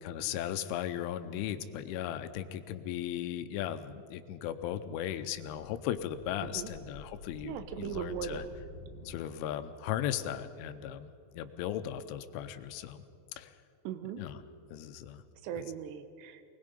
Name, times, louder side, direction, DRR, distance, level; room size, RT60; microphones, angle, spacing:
voice 1, 0.0-8.4 9.1-11.1 11.3-13.0 13.4-13.5 14.2-14.4 14.7-15.2 15.6-15.7, left 11 dB, 85° left, 10 dB, 3.3 m, -37 dB
sound 1, 6.1-9.6, left 1 dB, 40° right, 8.4 m, -50 dB
voice 2, 7.4-8.6 13.8-14.2 15.4-16.4, right 9 dB, 75° right, 9 dB, 3.0 m, -39 dB
24.5 x 20.5 x 5.3 m, 2.4 s
omnidirectional pair, 5.5 m